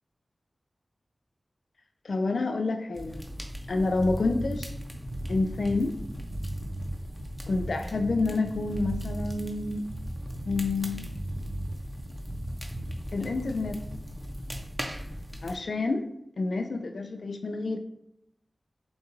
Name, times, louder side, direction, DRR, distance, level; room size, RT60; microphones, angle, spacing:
voice 1, 2.0-3.2 3.7-4.7 5.3-6.0 7.5-9.8 10.5-11.2 13.1-13.8 15.4-16.1 16.4-17.8, left 3 dB, 80° left, 6 dB, 0.3 m, -28 dB
sound 1, 2.9-15.6, equal, 5° right, 0.7 m, -39 dB
sound 2, 3.9-13.5, right 1 dB, 75° right, 0.5 m, -37 dB
6.2 x 2.3 x 3.0 m, 0.75 s
cardioid pair, 50°, 0 cm